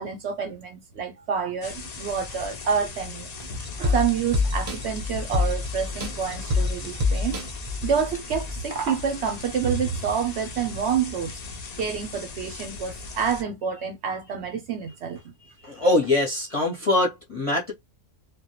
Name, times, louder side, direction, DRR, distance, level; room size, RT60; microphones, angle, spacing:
voice 1, 0.0-3.3 3.8-7.4 7.8-11.3 11.8-15.2, right 7 dB, 65° right, 0.8 m, -28 dB
sound 1, 1.6-13.4, left 4 dB, 75° left, 0.3 m, -39 dB
sound 2, 3.4-8.6 9.0-9.1, left 3 dB, 40° right, 0.5 m, -27 dB
voice 2, 15.6-17.7, left 2 dB, 35° left, 0.6 m, -23 dB
2.2 x 2.1 x 2.8 m
omnidirectional pair, 1.4 m